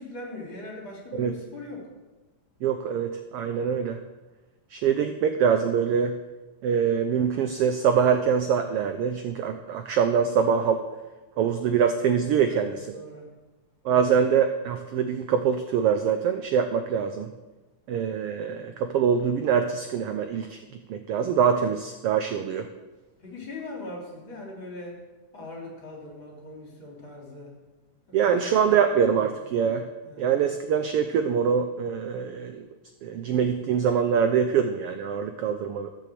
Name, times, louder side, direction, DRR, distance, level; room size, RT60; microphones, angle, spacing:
voice 1, 0.0-1.9 12.4-13.3 23.2-25.0 25.3-27.6 28.1-28.4 28.9-29.0 30.0-30.3, left 2 dB, 40° left, -3 dB, 4.0 m, -40 dB
voice 2, 2.6-4.0 4.7-6.2 6.6-10.8 11.4-13.0 13.8-17.3 17.9-20.6 20.9-22.7 28.1-29.9 30.2-32.7 33.0-35.9, right 7 dB, 80° right, 7 dB, 1.3 m, -24 dB
14.0 x 6.8 x 7.7 m, 1.2 s
omnidirectional pair, 3.4 m